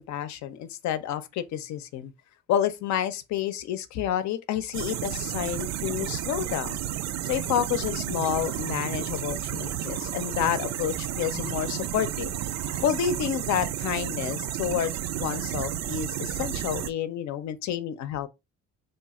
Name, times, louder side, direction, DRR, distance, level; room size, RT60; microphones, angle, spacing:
voice 1, 0.0-2.1 2.5-6.8 7.2-12.3 12.8-18.3, left 10 dB, 70° left, 0.6 m, -29 dB
sound 1, 4.7-16.9, right 11 dB, 65° right, 0.4 m, -32 dB
sound 2, 7.9-13.2, left 6 dB, 30° left, 0.4 m, -48 dB
3.3 x 2.4 x 4.0 m
cardioid pair, 105°, 29 cm